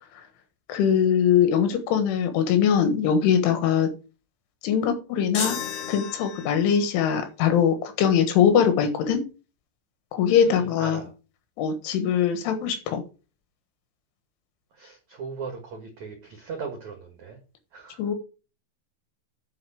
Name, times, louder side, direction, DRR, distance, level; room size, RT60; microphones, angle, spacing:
voice 1, 0.7-3.9 4.6-5.6 5.9-9.3 10.1-11.0 11.6-13.0 18.0-18.1, left 8 dB, 75° left, 8 dB, 3.7 m, -22 dB
sound 1, 5.3-6.8, left 6 dB, 45° left, 3.3 m, -32 dB
voice 2, 10.4-11.1 14.7-17.4 17.7-18.1, right 5 dB, 75° right, 4 dB, 1.7 m, -38 dB
9.7 x 5.3 x 6.1 m, 0.32 s
omnidirectional pair, 5.9 m